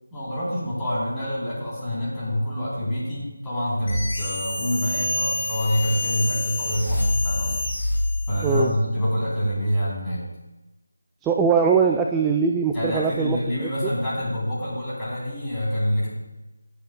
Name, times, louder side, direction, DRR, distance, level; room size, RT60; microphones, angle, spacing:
voice 1, 0.1-7.6 8.3-10.2 12.7-16.1, equal, 10° left, -12 dB, 3.4 m, -26 dB
sound 1, 3.9-8.7, left 2 dB, 40° left, 3.4 m, -27 dB
voice 2, 8.4-8.7 11.2-13.7, right 5 dB, 5° right, 2 dB, 0.3 m, -21 dB
17.5 x 7.8 x 2.3 m, 1.0 s
figure-of-eight pair, 165°, 0 cm